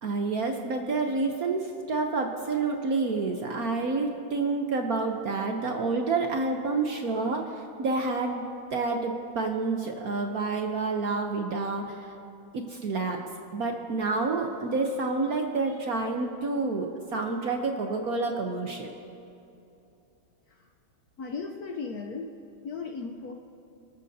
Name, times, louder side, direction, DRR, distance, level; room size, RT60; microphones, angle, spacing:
voice 1, 0.0-8.4 8.7-12.1 12.5-13.2 13.5-18.9, right 3 dB, 55° right, 3 dB, 1.1 m, -29 dB
voice 2, 21.2-22.3 22.6-23.3, left 4 dB, 60° left, 3 dB, 1.1 m, -36 dB
26.0 x 13.0 x 2.8 m, 2.8 s
omnidirectional pair, 2.3 m